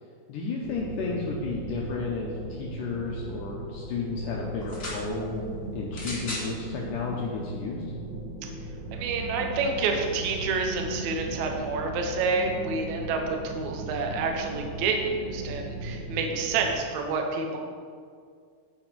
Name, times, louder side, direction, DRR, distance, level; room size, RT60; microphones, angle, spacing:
voice 1, 0.3-5.4 5.7-7.8, left 4 dB, 85° left, -2 dB, 1.8 m, -32 dB
sound 1, 0.6-16.7, right 2 dB, 60° right, 1.1 m, -38 dB
sound 2, 4.6-5.0 5.9-6.5 7.4-7.5, left 1 dB, 25° left, 1.6 m, -36 dB
voice 2, 8.9-17.6, right 4 dB, 80° right, 2 dB, 1.6 m, -28 dB
10.5 x 4.9 x 5.9 m, 2.1 s
omnidirectional pair, 4.9 m